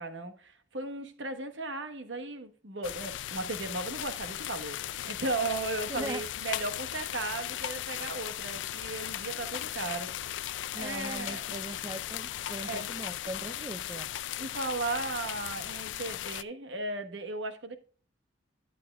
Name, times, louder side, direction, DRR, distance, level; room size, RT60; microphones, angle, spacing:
voice 1, 0.0-10.1 10.8-11.5 12.6-12.9 14.4-17.8, right 2 dB, 80° right, 1.2 m, -36 dB
sound 1, 2.8-16.4, left 12 dB, 80° left, 0.4 m, -37 dB
voice 2, 5.9-6.3 10.7-14.1, right 2 dB, 20° right, 0.4 m, -40 dB
11.0 x 7.6 x 2.3 m
head